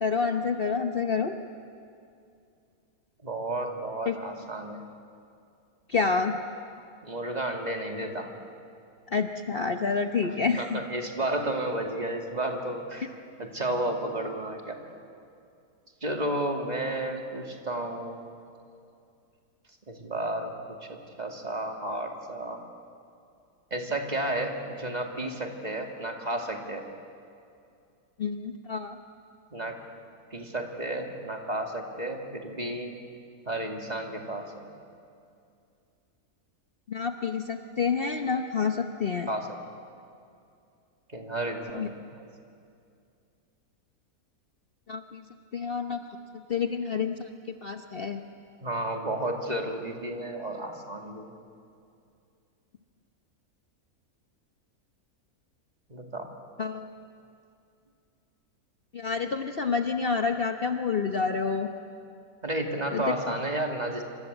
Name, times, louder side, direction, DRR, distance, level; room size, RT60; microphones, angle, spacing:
voice 1, 0.0-1.4 4.1-4.2 5.9-6.4 9.1-10.8 28.2-29.0 36.9-39.3 41.7-41.9 44.9-45.2 45.5-46.0 46.3-48.2 56.6-56.9 58.9-61.7 62.9-63.2, left 5 dB, 45° left, 5 dB, 1.0 m, -28 dB
voice 2, 3.2-4.9 7.0-8.3 10.2-13.1 13.4-14.8 16.0-18.2 19.9-20.5 20.9-22.6 23.7-26.8 29.5-29.8 30.3-32.9 33.5-34.6 39.3-39.6 41.1-42.2 48.6-51.3 55.9-56.3 62.4-64.0, right 1 dB, 25° right, 2 dB, 2.5 m, -32 dB
27.5 x 26.0 x 8.1 m, 2.5 s
omnidirectional pair, 1.6 m